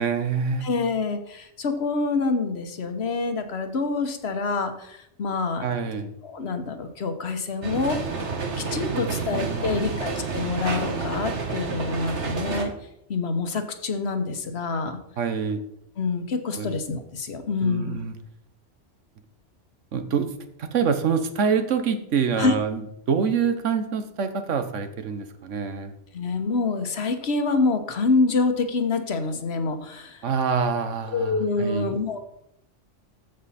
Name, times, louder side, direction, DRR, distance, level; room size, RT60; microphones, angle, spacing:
voice 1, 0.0-0.7 5.6-6.1 8.9-10.0 15.2-15.6 16.5-16.7 17.6-18.1 19.9-20.3 20.6-22.8 23.1-25.9 30.2-31.9, right 6 dB, 90° right, 9 dB, 1.4 m, -26 dB
voice 2, 0.6-5.7 6.2-8.0 8.6-12.7 13.1-15.0 16.0-18.0 22.4-22.5 26.1-30.2 31.1-32.2, left 4 dB, 60° left, 7 dB, 1.2 m, -26 dB
sound 1, 7.6-12.6, right 4 dB, 70° right, 1.6 m, -29 dB
14.5 x 5.4 x 4.2 m, 0.78 s
omnidirectional pair, 1.2 m